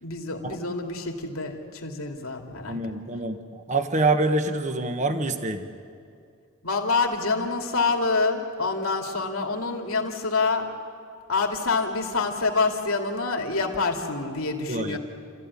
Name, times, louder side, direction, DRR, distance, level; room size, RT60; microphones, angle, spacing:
voice 1, 0.0-2.8 6.6-10.7 11.3-15.0, left 3 dB, 85° left, 3 dB, 2.7 m, -26 dB
voice 2, 2.7-5.7 14.7-15.0, right 2 dB, 35° right, 7 dB, 1.3 m, -26 dB
29.0 x 14.5 x 9.8 m, 2.4 s
head